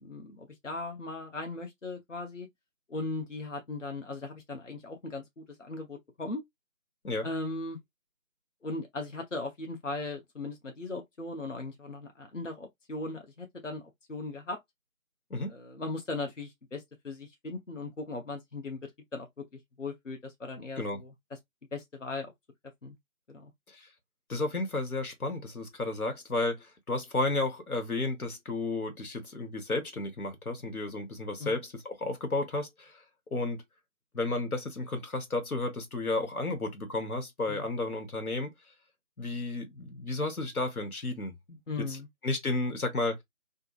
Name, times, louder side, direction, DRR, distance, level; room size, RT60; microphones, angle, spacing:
voice 1, 0.0-2.5 2.9-6.4 7.2-7.8 8.6-13.8 14.1-14.6 15.5-18.8 19.1-21.4 21.7-22.3 22.8-23.0 23.3-23.5 31.4-31.6 37.5-37.7 41.7-42.1, left 2 dB, 60° left, 0.8 m, -38 dB
voice 2, 24.3-33.0 33.3-33.6 34.1-38.5 39.2-41.6 41.9-42.0 42.2-43.2, left 2 dB, 90° left, 1.1 m, -32 dB
2.8 x 2.5 x 2.3 m
figure-of-eight pair, 180°, 42 cm